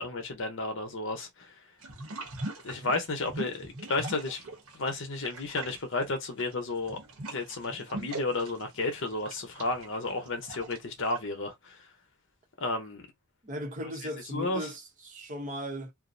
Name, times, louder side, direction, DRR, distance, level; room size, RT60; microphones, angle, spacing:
voice 1, 0.0-1.5 2.6-4.4 4.7-7.0 7.3-11.8 12.6-13.1 14.3-14.6, left 3 dB, 55° left, 0.7 m, -32 dB
sound 1, 1.8-4.9 5.2-11.2, right 2 dB, 70° right, 0.9 m, -41 dB
voice 2, 13.4-15.9, equal, 35° right, 0.6 m, -37 dB
2.5 x 2.0 x 2.5 m
head